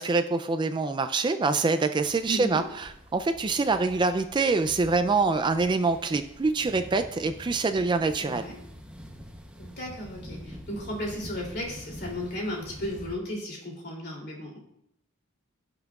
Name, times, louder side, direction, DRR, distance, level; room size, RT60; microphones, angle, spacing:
voice 1, 0.0-8.5, right 3 dB, 20° right, 9 dB, 0.3 m, -25 dB
sound 1, 2.0-13.2, equal, 5° right, 0.7 m, -46 dB
voice 2, 2.3-2.6 8.2-8.6 9.6-14.6, equal, 50° left, -2 dB, 2.8 m, -35 dB
16.5 x 5.8 x 2.4 m, 0.75 s
head